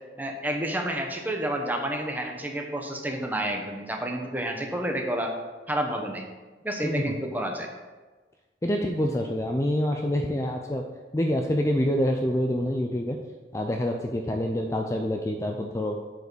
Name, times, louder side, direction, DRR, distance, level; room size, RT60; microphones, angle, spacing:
voice 1, 0.2-5.3 5.7-6.3 6.6-7.7, right 1 dB, 10° right, 2 dB, 1.0 m, -30 dB
voice 2, 6.8-7.2 8.6-10.8 11.1-13.2 13.5-16.0, equal, 15° left, 2 dB, 0.5 m, -26 dB
8.2 x 4.8 x 6.2 m, 1.3 s
head